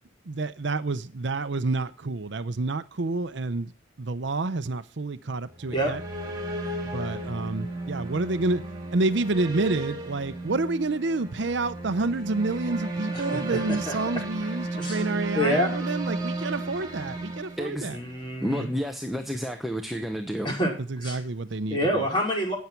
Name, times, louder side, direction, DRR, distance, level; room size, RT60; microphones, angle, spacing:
voice 1, 0.3-3.7 4.0-6.0 6.9-8.6 8.9-18.0 18.6-18.7 20.9-22.1, right 3 dB, 65° right, 0.7 m, -29 dB
sound 1, 5.5-18.3, right 2 dB, 20° right, 3.5 m, -34 dB
voice 2, 13.1-13.9 14.8-15.0 15.3-15.7 17.9-18.7 20.4-21.2 21.7-22.6, equal, 25° left, 4.9 m, -27 dB
voice 3, 17.6-17.9 18.4-20.5, equal, ahead, 0.9 m, -30 dB
13.0 x 9.4 x 4.5 m
head